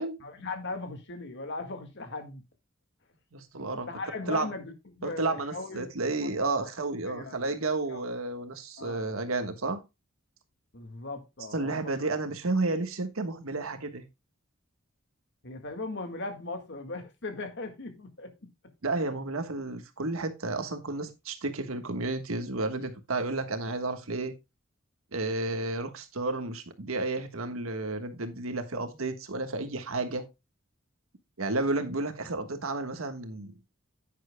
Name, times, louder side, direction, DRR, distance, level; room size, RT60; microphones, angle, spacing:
voice 1, 0.2-2.4 3.7-6.7 7.1-7.6 7.9-8.0 8.8-9.1 10.7-12.0 15.4-18.5, left 3 dB, 60° left, 1.8 m, -39 dB
voice 2, 3.3-3.9 4.3-4.5 5.0-9.8 11.5-14.0 18.8-24.3 25.1-30.2 31.4-33.5, right 2 dB, 85° right, 1.4 m, -31 dB
10.0 x 9.2 x 2.2 m
head